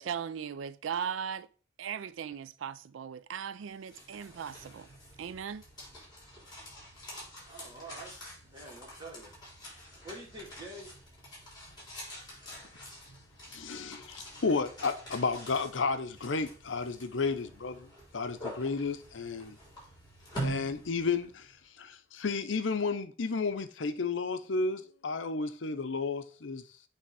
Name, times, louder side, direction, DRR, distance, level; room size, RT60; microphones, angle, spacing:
voice 1, 0.0-1.5 1.8-4.9 5.2-5.6, right 7 dB, 85° right, 0.4 m, -38 dB
sound 1, 3.8-21.6, right 1 dB, 20° left, 4.1 m, -45 dB
voice 2, 7.4-8.1 8.4-9.4 10.0-10.9, right 1 dB, 25° right, 2.3 m, -46 dB
voice 3, 13.5-19.6 20.4-26.8, left 4 dB, 75° left, 0.7 m, -32 dB
8.4 x 3.5 x 4.8 m
head